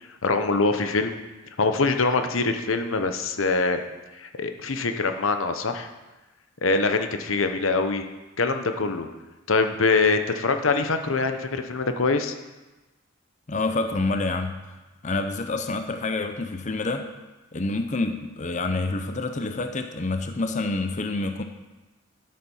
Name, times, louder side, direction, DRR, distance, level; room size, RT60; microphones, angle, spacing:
voice 1, 0.2-1.1 1.6-3.8 4.2-5.9 6.6-8.0 8.4-9.1 9.5-12.3, left 3 dB, 85° left, 7 dB, 1.0 m, -24 dB
voice 2, 13.5-14.7 15.0-17.1 17.5-21.4, left 3 dB, 35° left, 7 dB, 0.7 m, -27 dB
12.5 x 7.6 x 5.5 m, 1.1 s
head